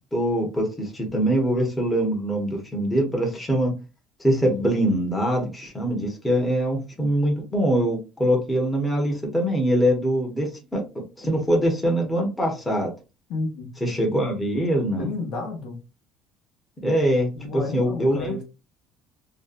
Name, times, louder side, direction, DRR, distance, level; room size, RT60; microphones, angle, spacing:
voice 1, 0.1-3.7 4.2-10.8 11.2-12.9 13.8-15.1 16.8-18.3, equal, 10° left, 0.7 m, -23 dB
voice 2, 13.3-13.7 15.0-15.8 17.3-18.4, left 3 dB, 65° left, 0.8 m, -31 dB
2.6 x 2.1 x 2.4 m
cardioid pair, 145°, 0 cm